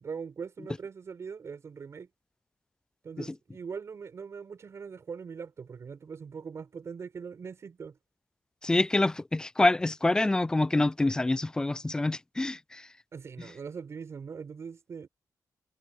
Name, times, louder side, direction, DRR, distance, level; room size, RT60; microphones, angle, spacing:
voice 1, 0.0-2.1 3.0-8.0 13.1-15.1, right 6 dB, 45° right, 5.9 m, -41 dB
voice 2, 8.6-12.8, left 2 dB, 10° left, 0.4 m, -26 dB
wide cardioid pair, 170°, 7 cm